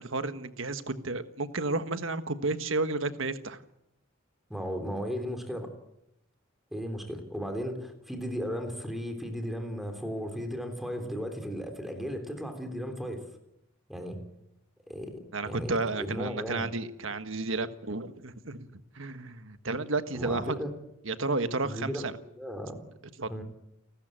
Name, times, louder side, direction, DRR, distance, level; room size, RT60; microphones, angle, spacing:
voice 1, 0.0-3.6 15.3-20.6 21.0-22.1 23.2-23.3, right 3 dB, 70° right, 10 dB, 1.5 m, -32 dB
voice 2, 4.5-5.7 6.7-13.2 13.9-14.2 14.9-16.6 20.1-20.7 21.6-22.1 22.4-22.8 23.3-23.4, equal, ahead, 6 dB, 3.4 m, -35 dB
29.0 x 13.0 x 9.0 m, 0.83 s
head